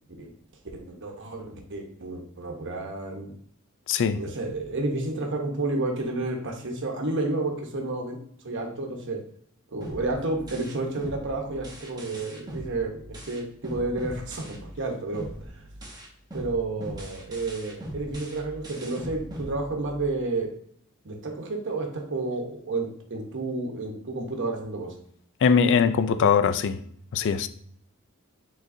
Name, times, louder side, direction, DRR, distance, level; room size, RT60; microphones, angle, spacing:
voice 1, 0.7-3.3 4.1-8.2 8.4-9.2 9.7-15.6 16.3-20.5 21.0-24.9, right 2 dB, 60° right, 1.0 m, -31 dB
voice 2, 3.9-4.2 25.4-26.8 27.1-27.5, left 6 dB, 60° left, 0.4 m, -21 dB
sound 1, 9.8-14.8 15.1-20.2, equal, 20° right, 0.9 m, -40 dB
4.8 x 3.9 x 2.6 m
head